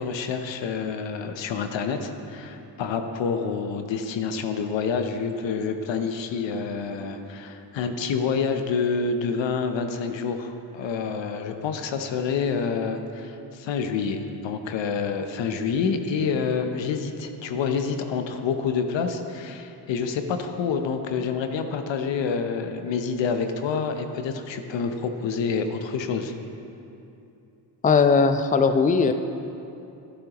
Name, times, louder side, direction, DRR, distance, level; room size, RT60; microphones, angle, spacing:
voice 1, 0.0-26.3, left 5 dB, 75° left, 7 dB, 0.8 m, -28 dB
voice 2, 27.8-29.1, left 5 dB, 20° left, 9 dB, 0.5 m, -19 dB
11.0 x 11.0 x 3.0 m, 2.7 s
supercardioid pair, 50°, 45 cm